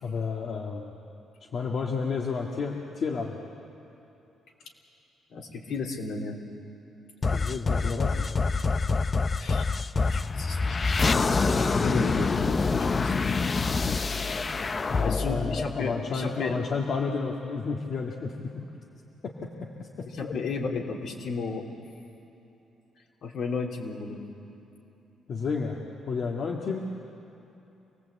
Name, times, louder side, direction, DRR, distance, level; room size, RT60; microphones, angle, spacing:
voice 1, 0.0-0.9 1.5-3.4 7.3-8.3 14.9-18.5 19.2-20.3 25.3-25.8 26.1-26.8, left 5 dB, 55° left, -2 dB, 1.9 m, -31 dB
voice 2, 5.3-6.4 9.4-9.7 10.1-13.1 15.0-16.6 20.1-21.7 23.2-24.2, left 4 dB, 70° left, 0 dB, 3.3 m, -33 dB
sound 1, 7.2-16.5, left 4 dB, 35° left, 0.7 m, -26 dB
27.0 x 18.5 x 8.4 m, 2.9 s
cardioid pair, 90°, 0 cm